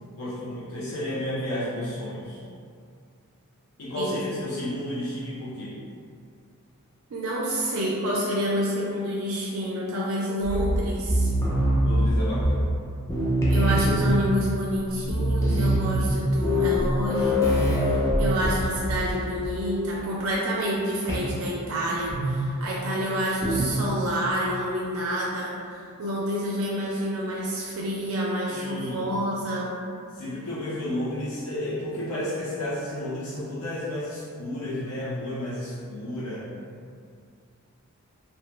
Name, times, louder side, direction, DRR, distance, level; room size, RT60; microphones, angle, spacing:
voice 1, 0.2-2.4 3.8-5.7 11.8-12.8 28.5-29.1 30.2-36.5, left 1 dB, 75° left, -8 dB, 0.6 m, -32 dB
voice 2, 7.1-11.3 13.5-29.7, equal, 65° right, -4 dB, 0.4 m, -28 dB
sound 1, 10.4-12.8 13.1-14.4 14.8-14.9 15.0-19.2 19.4-19.7 21.1-21.3 22.1-22.5 23.4-23.8, equal, 15° left, 0.4 m, -23 dB
2.9 x 2.1 x 3.1 m, 2.3 s
head